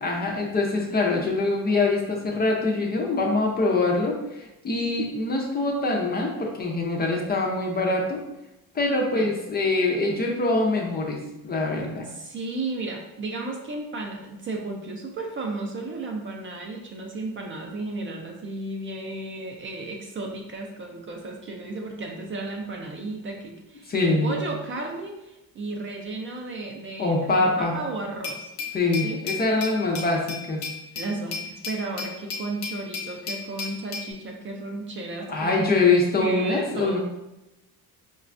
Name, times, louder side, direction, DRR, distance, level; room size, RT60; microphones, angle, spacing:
voice 1, 0.0-8.2 8.7-12.1 23.9-24.4 27.0-27.8 28.7-30.6 35.3-37.0, left 3 dB, 25° left, 0 dB, 0.4 m, -24 dB
voice 2, 12.1-28.5 29.0-29.2 31.0-35.6 36.2-37.0, right 2 dB, 35° right, 1 dB, 0.4 m, -34 dB
Glass, 28.2-34.1, left 5 dB, 85° left, 0.9 m, -35 dB
4.9 x 2.2 x 2.4 m, 0.93 s
cardioid pair, 150°, 37 cm